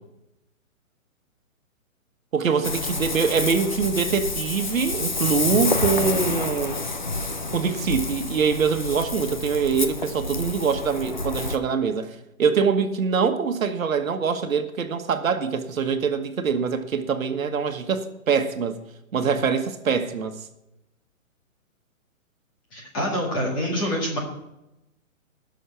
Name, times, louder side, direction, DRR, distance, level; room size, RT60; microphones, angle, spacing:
voice 1, 2.3-6.8 7.5-18.8 19.1-20.4, right 6 dB, 75° right, 1.3 m, -24 dB
Ocean, 2.6-11.6, left 3 dB, 35° left, 0.5 m, -28 dB
voice 2, 22.7-24.2, equal, 15° left, 1.9 m, -26 dB
16.0 x 6.4 x 5.8 m
hypercardioid pair, 180°, 41 cm